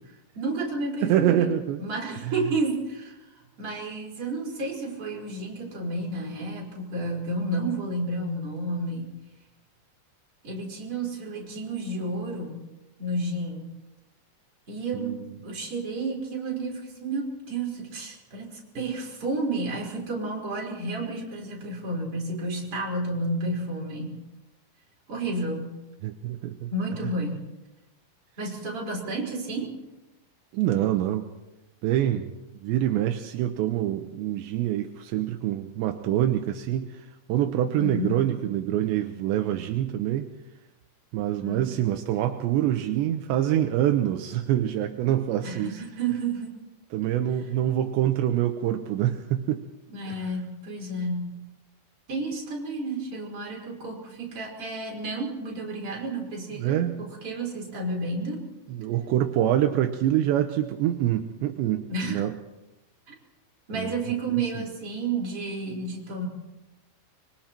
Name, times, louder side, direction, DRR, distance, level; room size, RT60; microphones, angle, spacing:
voice 1, 0.3-3.2 3.6-9.1 10.4-12.6 13.0-13.7 14.7-24.2 25.1-25.8 26.7-27.4 28.4-29.8 37.8-38.3 41.4-41.7 45.4-46.5 49.9-51.4 52.1-58.5 61.9-62.2 63.1-63.2 63.7-66.3, right 2 dB, 30° right, -1 dB, 4.9 m, -31 dB
voice 2, 1.0-1.8 2.2-2.3 14.9-15.3 26.0-26.7 30.5-31.3 31.8-32.3 32.6-40.3 41.1-45.8 46.9-49.6 50.1-50.2 56.6-57.0 58.8-62.4 63.7-63.9 64.6-64.7, right 12 dB, 80° right, 5 dB, 3.0 m, -25 dB
25.5 x 23.0 x 4.4 m, 1.0 s
omnidirectional pair, 5.1 m